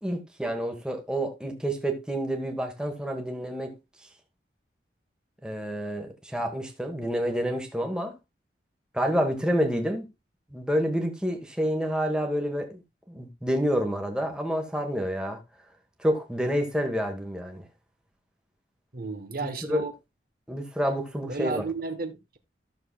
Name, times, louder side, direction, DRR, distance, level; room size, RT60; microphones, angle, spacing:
voice 1, 0.0-3.7 5.4-8.1 8.9-10.1 10.5-12.8 13.1-15.4 16.0-17.6 19.4-19.9 20.5-21.6, equal, 5° right, 1.2 m, -28 dB
voice 2, 18.9-19.9 21.2-22.4, right 4 dB, 55° right, 1.0 m, -33 dB
13.5 x 6.7 x 2.2 m
head